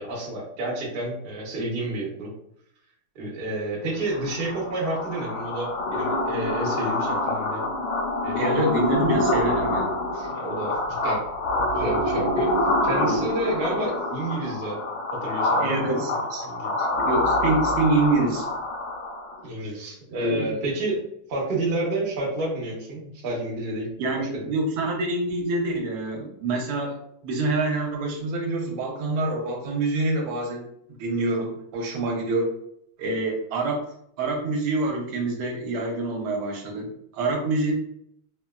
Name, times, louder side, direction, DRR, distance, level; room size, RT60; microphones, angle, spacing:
voice 1, 0.0-2.3 3.1-7.6 8.2-8.6 10.1-11.2 11.7-12.5 12.8-14.8 15.1-16.7 19.4-21.0 21.3-23.9 24.1-24.5, right 1 dB, 55° right, -3 dB, 0.6 m, -30 dB
sound 1, 4.1-19.4, left 1 dB, 75° left, 1.5 m, -26 dB
voice 2, 8.4-10.0 13.0-13.3 15.6-16.4 16.8-18.5 20.1-20.6 24.0-30.7 31.0-32.5 33.0-33.8 34.2-37.7, right 2 dB, 80° right, 2 dB, 1.5 m, -26 dB
3.9 x 2.2 x 2.2 m, 0.72 s
omnidirectional pair, 2.4 m